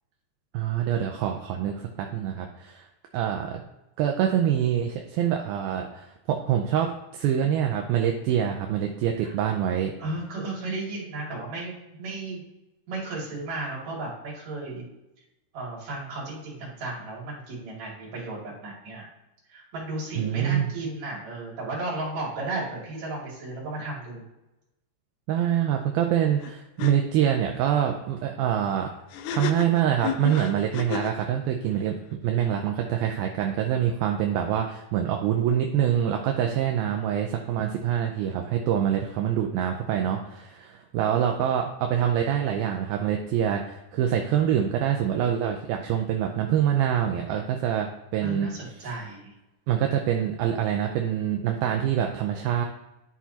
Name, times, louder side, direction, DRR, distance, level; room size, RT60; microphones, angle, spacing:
voice 1, 0.5-2.9 3.1-3.6 4.0-9.9 20.2-20.7 25.3-28.9 29.3-48.5 48.8-49.0 49.7-52.7, right 9 dB, 80° right, 3 dB, 2.3 m, -25 dB
voice 2, 10.0-12.4 12.9-14.8 15.5-19.1 19.5-24.2 48.2-49.3, right 2 dB, 45° right, -5 dB, 3.5 m, -34 dB
sound 1, 26.4-26.5 26.8-26.9 29.1-31.2, left 8 dB, 90° left, 2.7 m, -32 dB
11.5 x 5.9 x 2.8 m, 0.93 s
omnidirectional pair, 4.7 m